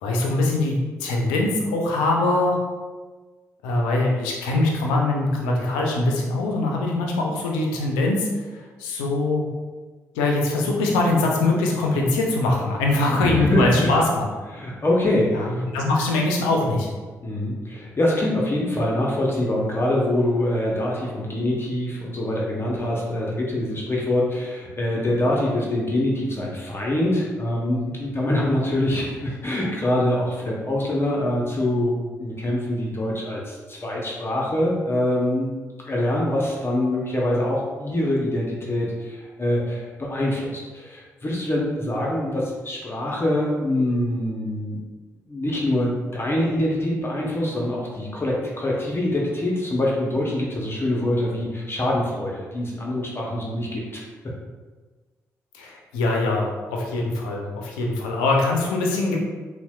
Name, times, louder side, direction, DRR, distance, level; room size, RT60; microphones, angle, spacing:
voice 1, 0.0-2.6 3.6-8.3 8.8-9.4 10.1-14.3 15.4-16.9 55.5-59.2, left 2 dB, 90° left, 0 dB, 0.4 m, -22 dB
voice 2, 13.1-13.9 14.5-15.6 17.2-35.5 35.8-44.8 45.3-54.0, left 1 dB, 35° left, -3 dB, 0.6 m, -24 dB
4.0 x 2.1 x 2.2 m, 1.4 s
hypercardioid pair, 45°, 7 cm